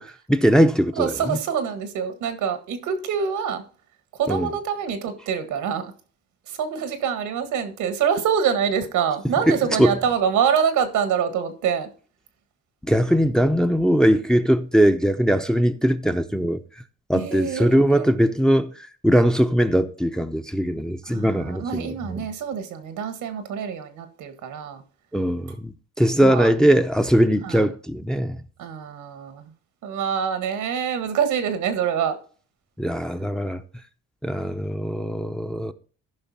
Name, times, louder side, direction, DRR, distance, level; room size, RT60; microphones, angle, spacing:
voice 1, 0.0-1.4 4.3-4.5 9.5-10.0 12.8-16.8 17.1-22.3 25.1-28.4 32.8-33.6 34.2-35.7, equal, ahead, 0.7 m, -21 dB
voice 2, 0.9-3.6 4.1-5.9 6.5-11.9 17.1-17.6 17.9-18.1 21.1-24.8 26.2-26.5 27.4-27.6 28.6-29.5 29.8-32.2, right 7 dB, 90° right, 1.7 m, -25 dB
14.0 x 5.6 x 4.2 m
cardioid pair, 90°, 30 cm